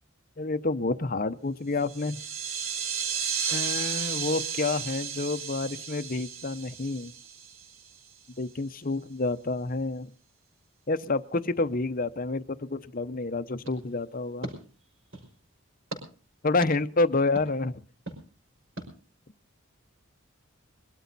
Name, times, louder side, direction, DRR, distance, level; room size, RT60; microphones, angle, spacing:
voice 1, 0.4-2.2 3.5-7.1 8.4-10.1 10.9-14.5 16.4-17.8, left 3 dB, 40° left, 12 dB, 0.7 m, -29 dB
sound 1, 1.8-7.9, right 7 dB, 85° right, 2.0 m, -33 dB
sound 2, 13.6-15.4 15.9-16.0 16.6-16.7 17.4-17.5 18.1-18.2 18.8-18.9, right 1 dB, 65° right, 5.1 m, -40 dB
22.5 x 12.5 x 4.1 m, 0.38 s
head